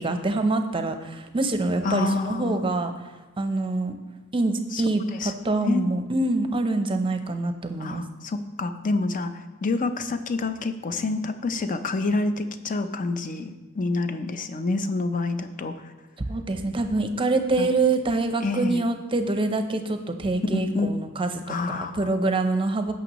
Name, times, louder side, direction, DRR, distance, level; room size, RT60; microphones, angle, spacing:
voice 1, 0.0-2.9 3.4-4.0 4.3-5.0 5.4-8.0 16.3-22.9, right 2 dB, 25° right, 7 dB, 0.6 m, -25 dB
voice 2, 1.8-2.6 4.7-4.8 5.1-5.3 5.6-5.9 7.8-15.9 17.6-17.7 18.4-18.8 20.5-20.9 21.5-22.1, left 3 dB, 40° left, 9 dB, 0.6 m, -28 dB
15.5 x 6.0 x 3.0 m, 1.2 s
head